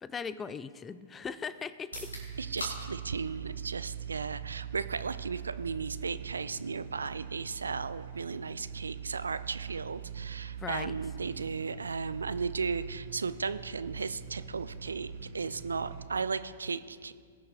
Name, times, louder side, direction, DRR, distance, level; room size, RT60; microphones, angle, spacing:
voice 1, 0.0-2.2 10.6-10.9, left 6 dB, 15° left, 16 dB, 0.4 m, -39 dB
sound 1, 1.8-15.6, left 1 dB, 75° left, 3.5 m, -52 dB
sound 2, 1.9-16.0, right 8 dB, 55° right, 1.1 m, -42 dB
voice 2, 2.4-17.1, right 5 dB, 70° right, 14 dB, 0.4 m, -35 dB
19.5 x 6.5 x 4.5 m, 2.1 s
figure-of-eight pair, 105°, 0 cm